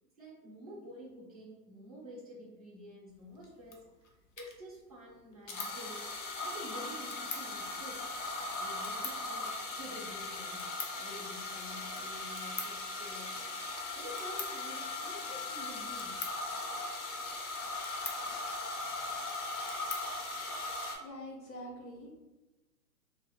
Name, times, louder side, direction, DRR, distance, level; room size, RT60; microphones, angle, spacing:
voice 1, 0.2-3.9 4.4-6.1 6.4-8.1 8.6-13.3 13.9-16.2, equal, 25° right, -6 dB, 0.4 m, -49 dB
sound 1, 3.4-3.5 3.7-3.8 4.4-4.5 5.5-21.0, left 2 dB, 50° left, 0.5 m, -38 dB
voice 2, 21.0-22.2, equal, 80° left, -1 dB, 1.0 m, -45 dB
2.3 x 2.1 x 3.3 m, 1.1 s
hypercardioid pair, 145°, 50 cm